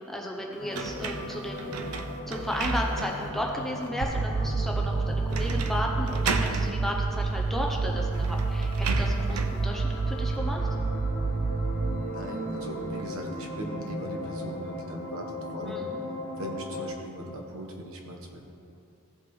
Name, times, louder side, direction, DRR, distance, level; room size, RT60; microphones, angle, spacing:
voice 1, 0.0-1.7 2.3-10.7 15.7-16.0, equal, ahead, -1 dB, 0.6 m, -34 dB
sound 1, 0.6-16.9, left 1 dB, 50° left, 1.1 m, -39 dB
sound 2, 0.7-3.3 3.8-3.9 5.3-5.8 6.1-6.7 7.7-7.8 8.1-9.6, right 4 dB, 85° right, 0.6 m, -33 dB
sound 3, 4.0-13.0, right 3 dB, 40° right, 0.3 m, -29 dB
voice 2, 12.1-15.8 16.4-18.4, equal, 70° right, 1 dB, 1.2 m, -40 dB
16.0 x 5.6 x 3.2 m, 2.8 s
head